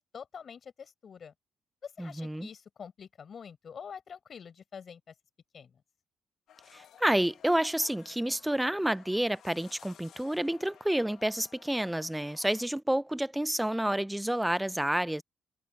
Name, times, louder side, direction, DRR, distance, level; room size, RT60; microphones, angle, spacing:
voice 1, 0.0-1.3 1.8-5.1 5.5-5.8, left 7 dB, 50° left, 5.1 m, -46 dB
voice 2, 2.0-2.5 6.7-15.2, right 1 dB, 5° right, 0.5 m, -29 dB
sound 1, 6.5-12.7, left 9 dB, 70° left, 1.5 m, -56 dB
open air
cardioid pair, 90°, 0 cm